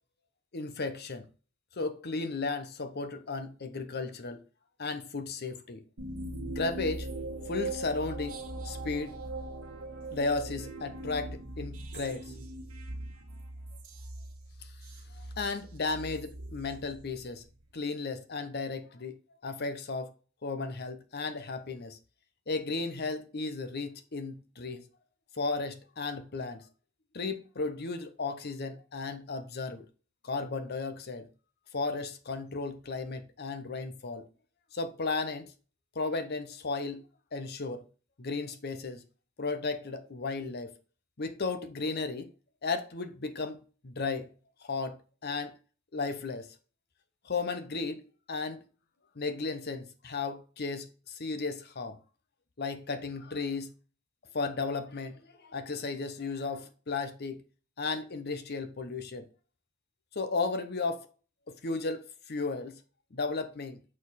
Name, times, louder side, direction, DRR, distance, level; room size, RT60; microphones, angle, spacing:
voice 1, 0.5-1.2 1.8-4.4 4.8-5.8 6.5-7.1 7.5-9.2 10.1-12.3 15.2-17.4 17.7-20.1 20.4-22.0 22.5-24.8 25.4-26.6 27.1-29.8 30.2-31.3 31.7-34.2 34.7-35.5 35.9-37.0 37.3-37.8 38.2-39.0 39.4-40.7 41.2-42.3 42.6-44.3 44.6-45.0 45.2-45.6 45.9-46.5 47.2-48.0 48.3-48.6 49.2-52.0 52.6-53.7 54.3-57.4 57.8-59.3 60.1-61.1 61.5-62.8 63.1-63.8, left 3 dB, 45° left, 0.8 m, -34 dB
sound 1, 6.0-17.5, right 2 dB, 90° right, 1.6 m, -41 dB
7.4 x 4.2 x 4.1 m
head